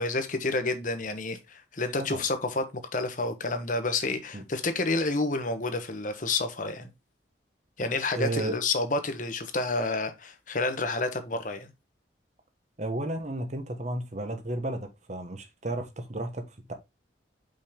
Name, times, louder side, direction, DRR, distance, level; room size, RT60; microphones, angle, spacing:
voice 1, 0.0-2.6 2.9-6.9 7.8-11.7, left 3 dB, 45° left, 1.1 m, -29 dB
voice 2, 8.1-8.6 12.8-16.7, right 1 dB, 40° right, 1.2 m, -33 dB
5.5 x 5.2 x 3.5 m
head